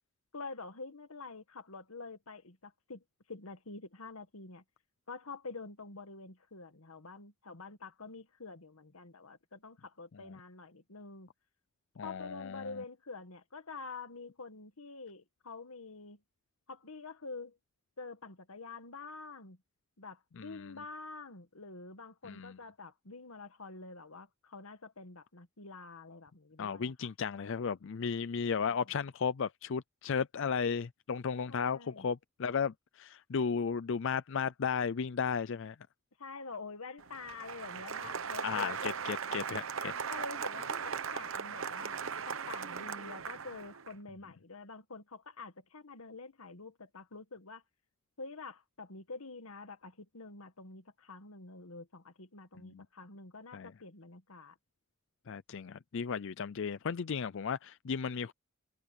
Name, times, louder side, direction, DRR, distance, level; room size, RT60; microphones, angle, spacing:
voice 1, 0.3-4.6 5.1-11.3 12.0-16.2 16.7-17.6 18.0-19.6 20.0-27.1 31.5-32.1 36.2-39.0 40.1-42.0 42.3-47.6 48.2-54.6, left 3 dB, 90° left, 1.8 m, -47 dB
voice 2, 12.0-12.8 20.4-20.7 22.2-22.6 26.6-35.8 38.4-39.9 52.6-52.9 53.5-53.7 55.3-58.3, left 6 dB, 60° left, 0.5 m, -35 dB
Applause, 37.0-43.9, right 6 dB, 65° right, 0.9 m, -38 dB
head